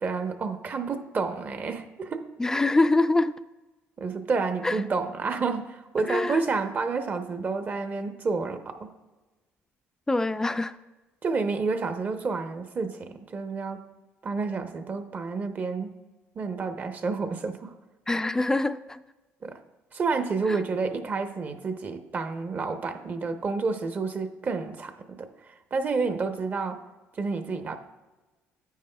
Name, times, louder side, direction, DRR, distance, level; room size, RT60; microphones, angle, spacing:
voice 1, 0.0-2.3 4.0-8.9 11.2-13.8 14.2-15.9 16.4-17.7 19.4-19.6 19.9-26.8 27.2-27.8, right 4 dB, 35° right, 8 dB, 0.7 m, -30 dB
voice 2, 2.4-3.4 4.6-4.8 6.1-6.4 10.1-10.8 18.1-19.0 20.5-20.6, left 2 dB, 10° left, 13 dB, 0.3 m, -24 dB
9.9 x 9.3 x 2.2 m, 1.2 s
cardioid pair, 100°, 5 cm